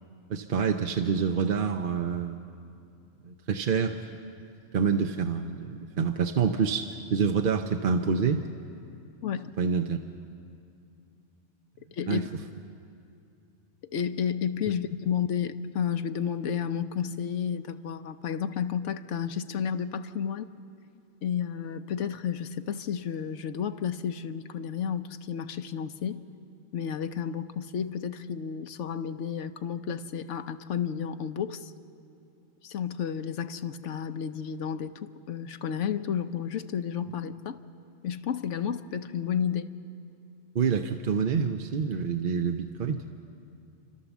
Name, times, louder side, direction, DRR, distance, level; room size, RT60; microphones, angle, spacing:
voice 1, 0.3-2.4 3.2-4.0 4.7-8.5 9.6-10.0 12.1-12.2 40.5-43.0, right 6 dB, 50° right, 5 dB, 0.8 m, -27 dB
voice 2, 11.9-12.3 13.9-20.5 21.2-26.2 26.7-31.7 32.6-37.6 38.0-39.7, left 8 dB, 80° left, 11 dB, 1.1 m, -31 dB
30.0 x 13.0 x 7.2 m, 2.7 s
omnidirectional pair, 1.2 m